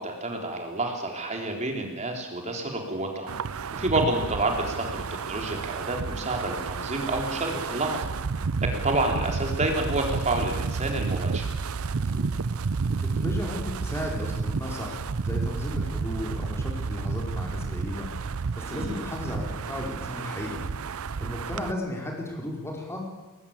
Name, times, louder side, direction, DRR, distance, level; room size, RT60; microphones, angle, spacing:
voice 1, 0.0-3.3 3.7-8.0 8.6-11.5 18.7-19.0, right 2 dB, 35° right, 2 dB, 3.7 m, -29 dB
Wind, 3.3-21.7, right 4 dB, 85° right, 0.6 m, -31 dB
voice 2, 11.9-12.3 13.0-18.1 18.5-20.6 21.2-23.0, left 1 dB, 10° left, 0 dB, 4.9 m, -35 dB
21.0 x 19.5 x 8.8 m, 1.2 s
head